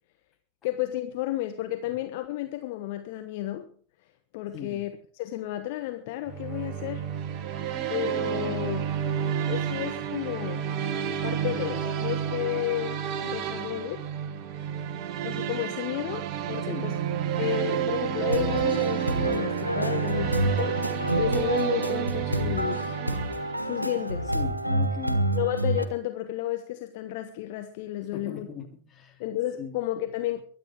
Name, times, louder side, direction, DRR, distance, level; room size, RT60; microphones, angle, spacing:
voice 1, 0.6-3.7 4.3-7.1 7.9-8.9 9.5-10.7 11.2-14.1 15.2-17.0 17.4-23.0 23.6-24.3 25.3-28.5 29.2-30.4, left 13 dB, 50° left, 1.2 m, -32 dB
voice 2, 4.5-4.8 16.6-16.9 23.8-23.9 24.3-25.2 28.1-29.2 29.6-29.8, left 6 dB, 25° left, 3.1 m, -39 dB
sound 1, 6.3-24.0, right 9 dB, 40° right, 1.2 m, -30 dB
sound 2, 18.3-25.9, right 1 dB, 85° right, 1.4 m, -28 dB
22.5 x 9.3 x 4.6 m
figure-of-eight pair, 90°, 0 cm